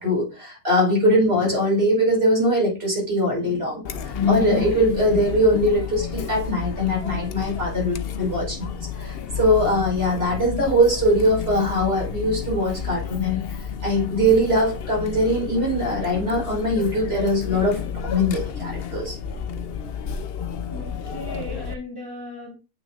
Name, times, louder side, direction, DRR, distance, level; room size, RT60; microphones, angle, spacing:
voice 1, 0.0-13.4 13.8-19.2, equal, 45° right, 5.0 m, -21 dB
Chatter, 3.8-21.7, left 7 dB, 55° left, 0.7 m, -31 dB
voice 2, 20.6-22.6, left 1 dB, 15° left, 1.3 m, -37 dB
8.6 x 6.2 x 2.4 m
omnidirectional pair, 1.5 m